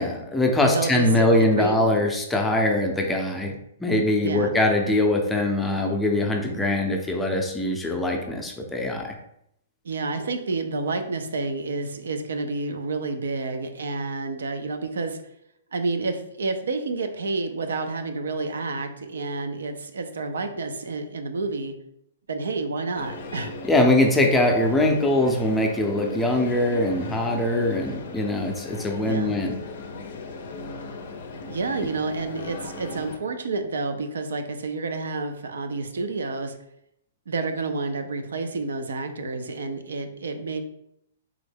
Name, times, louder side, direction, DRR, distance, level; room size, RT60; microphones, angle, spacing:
voice 1, 0.0-3.5 3.8-9.2 23.7-29.6, left 1 dB, 10° left, 2 dB, 0.5 m, -22 dB
voice 2, 0.7-2.0 4.2-4.5 9.8-15.2 15.7-21.7 22.3-23.5 29.0-29.3 31.5-36.6 37.3-40.6, right 3 dB, 80° right, 7 dB, 0.4 m, -29 dB
sound 1, 22.9-33.2, left 3 dB, 65° left, 0.5 m, -37 dB
3.5 x 2.1 x 3.4 m, 0.76 s
hypercardioid pair, 135°, 0 cm